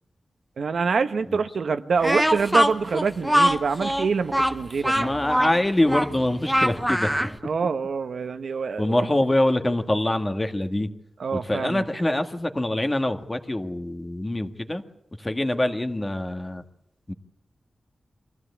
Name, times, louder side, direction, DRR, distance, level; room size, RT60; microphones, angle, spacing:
voice 1, 0.6-5.1 7.4-9.2 11.2-11.8, right 5 dB, 75° right, 9 dB, 1.1 m, -26 dB
Speech, 2.0-7.4, equal, ahead, 1.0 m, -23 dB
voice 2, 4.9-7.3 8.8-10.9 11.3-14.8 15.2-16.6 17.1-17.2, left 1 dB, 20° left, 7 dB, 1.7 m, -24 dB
24.5 x 16.0 x 8.4 m, 0.89 s
wide cardioid pair, 110°, 0 cm